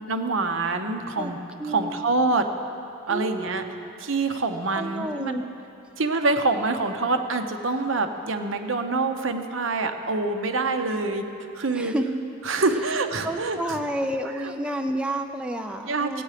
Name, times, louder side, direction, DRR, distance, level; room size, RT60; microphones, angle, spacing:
voice 1, 0.0-1.4 1.7-2.5 3.1-3.6 4.0-5.4 6.0-11.2 11.5-11.9 12.4-13.8 14.4-14.5 15.8-16.2, right 3 dB, 65° right, 6 dB, 0.8 m, -26 dB
voice 2, 1.6-2.0 3.1-3.9 4.7-5.4 11.7-12.2 13.2-16.2, right 1 dB, 5° right, 4 dB, 0.4 m, -30 dB
17.5 x 8.6 x 5.0 m, 2.7 s
head